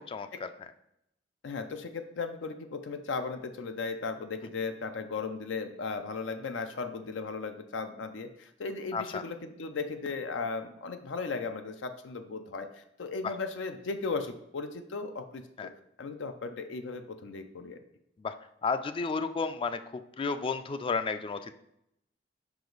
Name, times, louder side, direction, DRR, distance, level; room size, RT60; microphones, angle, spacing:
voice 1, 0.1-0.5 8.9-9.2 13.2-13.3 15.6-15.7 18.2-18.3 18.6-21.5, left 4 dB, 30° left, 11 dB, 0.3 m, -32 dB
voice 2, 1.4-12.7 13.0-15.7 16.0-17.8, left 4 dB, 85° left, 7 dB, 0.5 m, -36 dB
5.1 x 4.9 x 3.9 m, 0.78 s
head